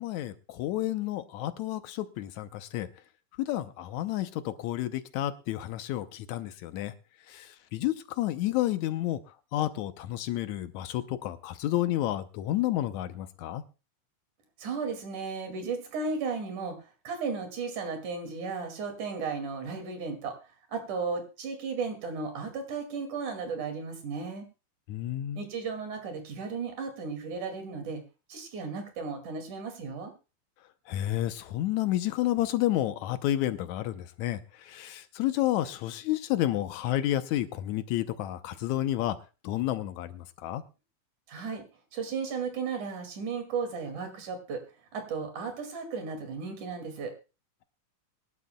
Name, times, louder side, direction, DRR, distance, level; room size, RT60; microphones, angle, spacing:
voice 1, 0.0-2.9 3.4-6.9 7.3-9.2 9.5-13.6 24.9-25.4 30.9-39.2 39.4-40.6, left 14 dB, 75° left, 11 dB, 2.1 m, -30 dB
voice 2, 14.6-16.8 17.1-20.4 20.7-24.5 25.4-28.0 28.3-30.1 41.3-41.6 41.9-44.6 44.9-47.1, right 5 dB, 80° right, 5 dB, 3.8 m, -35 dB
24.0 x 11.5 x 2.2 m, 0.31 s
omnidirectional pair, 3.4 m